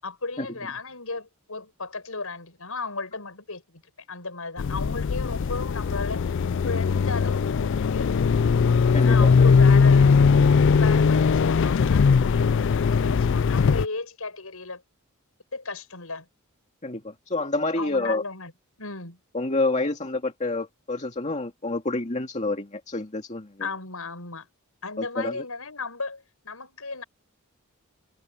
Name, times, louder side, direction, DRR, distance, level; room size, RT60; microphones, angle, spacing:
voice 1, 0.0-3.8 4.1-6.3 6.6-8.4 8.9-10.1 10.8-14.8 15.5-16.3 17.8-18.5 18.8-19.2 23.6-24.5 24.8-27.0, left 3 dB, 75° left, 6.4 m, -35 dB
sound 1, 4.6-13.8, left 5 dB, 55° left, 0.4 m, -20 dB
voice 2, 8.9-9.5 16.8-18.2 19.3-23.7 25.0-25.4, left 2 dB, 35° left, 2.2 m, -28 dB
head